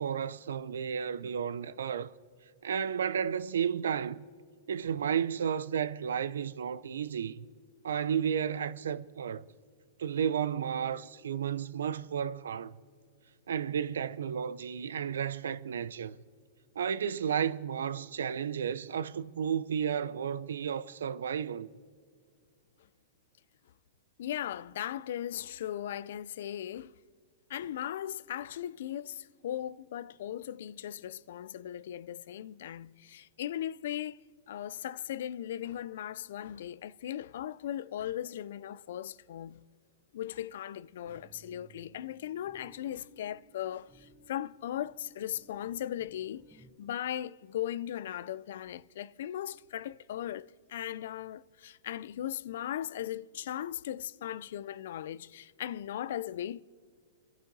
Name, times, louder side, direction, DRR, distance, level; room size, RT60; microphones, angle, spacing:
voice 1, 0.0-2.1 2.6-4.2 4.7-7.4 7.8-9.4 10.0-12.7 13.5-16.2 16.8-21.7, right 8 dB, 75° right, 0.5 m, -32 dB
voice 2, 24.2-26.9 27.5-34.2 34.5-39.6 40.1-56.6, left 11 dB, 65° left, 0.3 m, -38 dB
sound 1, 41.0-46.7, right 2 dB, 10° left, 3.2 m, -60 dB
28.0 x 11.5 x 2.7 m
hypercardioid pair, 115°, 0 cm